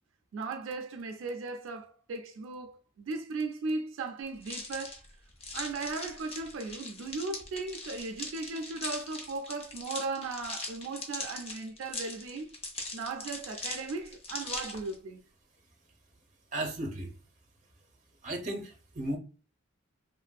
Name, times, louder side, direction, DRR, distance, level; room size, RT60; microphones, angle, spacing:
voice 1, 0.3-5.0 5.5-12.5 12.9-15.2, right 3 dB, 75° right, 0.3 m, -37 dB
sound 1, 4.4-14.9, left 2 dB, 30° left, 0.5 m, -41 dB
voice 2, 16.5-17.1 18.2-19.2, right 1 dB, 35° right, 0.6 m, -35 dB
3.0 x 2.5 x 2.2 m
head